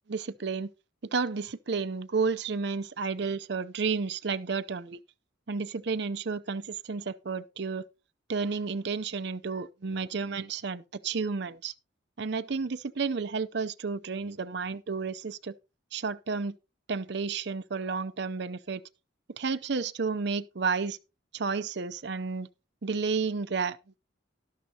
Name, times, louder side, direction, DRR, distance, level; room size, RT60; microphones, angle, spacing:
voice 1, 0.1-0.7 1.0-5.0 5.5-7.8 8.3-11.7 12.2-15.5 15.9-16.6 16.9-18.8 19.4-21.0 21.3-22.5 22.8-23.8, right 4 dB, 60° right, 0.6 m, -31 dB
12.0 x 11.5 x 2.8 m
head